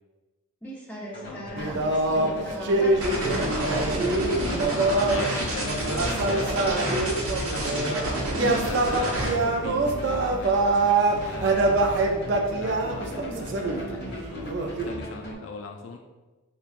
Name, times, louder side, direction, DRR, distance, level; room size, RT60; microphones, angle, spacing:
voice 1, 0.6-5.0 13.0-14.1, right 1 dB, 5° left, -7 dB, 0.8 m, -39 dB
sound 1, 1.1-15.3, left 1 dB, 50° left, 1.3 m, -39 dB
voice 2, 1.2-1.9 3.1-3.7 4.4-8.0 8.5-12.0 12.5-16.0, left 3 dB, 65° left, 3 dB, 0.3 m, -38 dB
sound 2, 1.6-5.3 5.6-8.0 8.3-14.9, right 2 dB, 55° right, 0.3 m, -25 dB
sound 3, 3.0-9.3, right 1 dB, 85° right, 0.8 m, -29 dB
5.4 x 2.2 x 2.4 m, 1.2 s
head